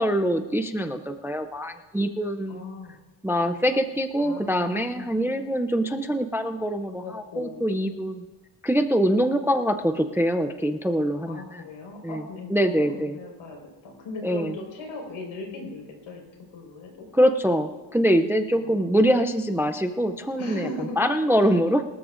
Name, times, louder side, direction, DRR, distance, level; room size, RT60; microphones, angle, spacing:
voice 1, 0.0-2.6 3.2-8.2 8.6-11.6 12.0-12.2 12.5-13.2 14.2-14.5 17.1-21.8, equal, 5° right, 8 dB, 0.3 m, -24 dB
voice 2, 2.5-3.0 4.2-5.2 7.0-7.7 11.3-16.2 16.5-16.9 18.5-18.9 20.4-21.0 21.5-21.6, left 2 dB, 85° left, 1 dB, 4.6 m, -38 dB
24.0 x 13.0 x 2.5 m, 1.1 s
cardioid pair, 170°, 47 cm